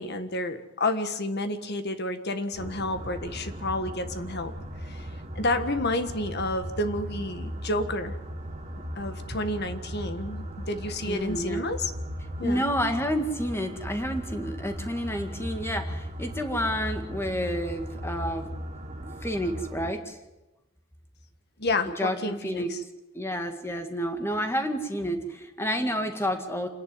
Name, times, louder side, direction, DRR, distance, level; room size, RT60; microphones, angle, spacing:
voice 1, 0.0-4.5 4.8-5.1 5.3-8.1 8.9-11.9 12.4-12.6 21.6-22.8, left 2 dB, 50° left, 9 dB, 1.6 m, -30 dB
sound 1, 2.5-19.9, equal, 35° right, 1.5 m, -37 dB
voice 2, 11.0-11.6 12.4-18.5 19.0-20.2 22.0-22.2 22.4-22.7 23.1-26.7, equal, 10° left, 5 dB, 2.0 m, -29 dB
27.5 x 10.5 x 9.4 m, 1.0 s
head